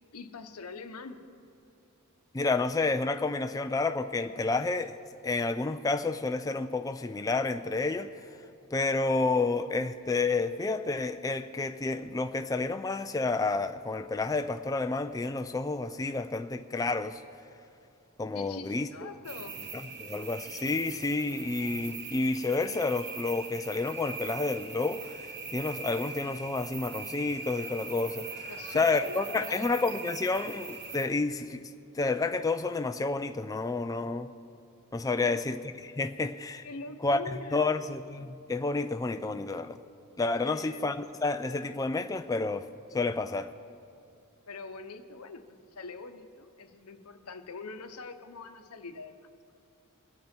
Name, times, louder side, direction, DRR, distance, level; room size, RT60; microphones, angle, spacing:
voice 1, 0.1-1.2 18.3-19.6 28.5-29.8 35.1-35.4 36.6-37.8 40.4-40.9 44.5-45.4 45.7-49.3, left 3 dB, 85° left, 0.9 m, -44 dB
voice 2, 2.3-5.0 5.2-8.1 8.7-17.2 18.2-18.9 20.0-31.7 31.9-34.3 34.9-36.6 37.0-39.8 40.2-42.7 42.9-43.5, left 3 dB, 15° left, 0.3 m, -30 dB
sound 1, 19.2-31.0, right 4 dB, 50° right, 1.0 m, -41 dB
23.0 x 8.6 x 4.4 m
head